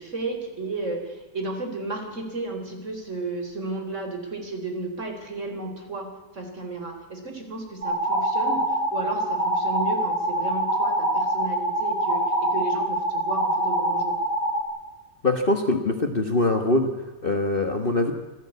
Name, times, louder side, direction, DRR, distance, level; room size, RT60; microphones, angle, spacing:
voice 1, 0.0-14.2, right 2 dB, 40° right, 4 dB, 4.4 m, -33 dB
sound 1, 7.8-14.6, right 1 dB, 65° right, 3.5 m, -25 dB
voice 2, 15.2-18.1, left 2 dB, 30° left, 4 dB, 1.5 m, -23 dB
25.5 x 16.0 x 8.4 m, 1.2 s
omnidirectional pair, 2.0 m